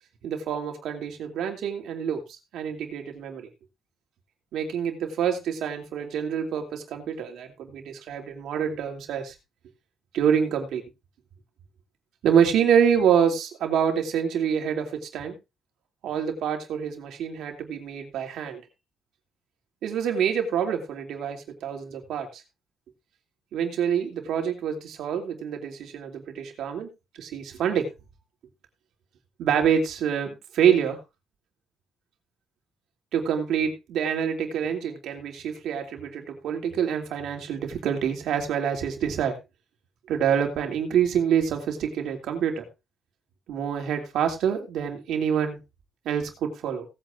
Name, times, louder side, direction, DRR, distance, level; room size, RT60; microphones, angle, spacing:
voice 1, 0.2-3.5 4.5-9.3 10.1-10.8 12.2-15.4 16.0-18.6 19.8-22.4 23.5-26.9 27.2-27.9 29.4-31.0 33.1-39.4 40.1-42.7 43.5-45.6 46.0-46.9, right 8 dB, 80° right, 3 dB, 2.9 m, -26 dB
18.0 x 8.9 x 2.6 m, 0.25 s
cardioid pair, 90°, 0 cm